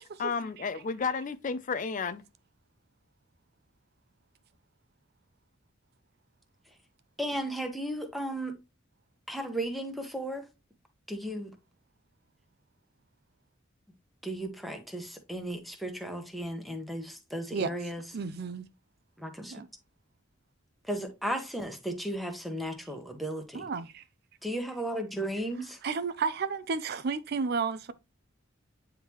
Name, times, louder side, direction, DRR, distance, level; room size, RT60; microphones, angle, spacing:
voice 1, 0.2-2.2, left 5 dB, 40° left, 0.4 m, -32 dB
voice 2, 7.2-8.6 9.3-10.4 11.1-11.5 14.2-18.0 19.2-19.6 20.8-23.7 24.4-25.8, right 1 dB, ahead, 1.0 m, -35 dB
voice 3, 18.1-18.7 19.5-19.7 23.5-24.0 25.8-27.9, right 5 dB, 55° right, 0.5 m, -32 dB
9.0 x 3.6 x 3.0 m
head